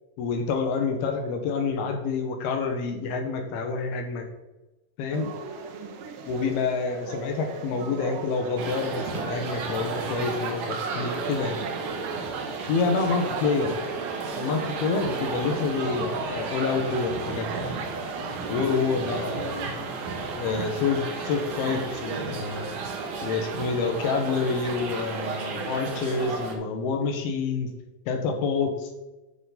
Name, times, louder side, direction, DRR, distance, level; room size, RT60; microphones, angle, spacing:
voice 1, 0.2-4.2 5.0-5.3 6.3-11.6 12.7-13.7 14.4-17.5 18.5-19.6 20.3-22.7 23.2-27.7 28.1-28.9, left 4 dB, 80° left, 4 dB, 3.0 m, -27 dB
sound 1, 5.1-20.4, right 5 dB, 80° right, 2.7 m, -38 dB
sound 2, 8.6-26.6, right 4 dB, 65° right, 2.5 m, -33 dB
9.2 x 5.8 x 4.1 m, 1.1 s
omnidirectional pair, 4.4 m